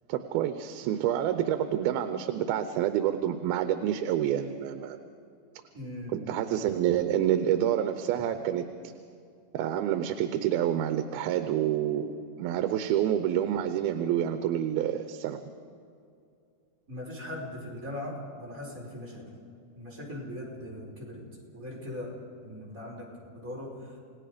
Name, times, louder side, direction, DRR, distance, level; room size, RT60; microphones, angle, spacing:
voice 1, 0.1-5.0 6.1-8.6 9.5-15.4, right 11 dB, 85° right, 9 dB, 2.7 m, -28 dB
voice 2, 5.7-6.2 16.9-19.2 19.7-21.3 21.5-24.0, left 1 dB, 20° right, -3 dB, 4.9 m, -40 dB
29.5 x 18.5 x 5.1 m, 2.5 s
omnidirectional pair, 4.3 m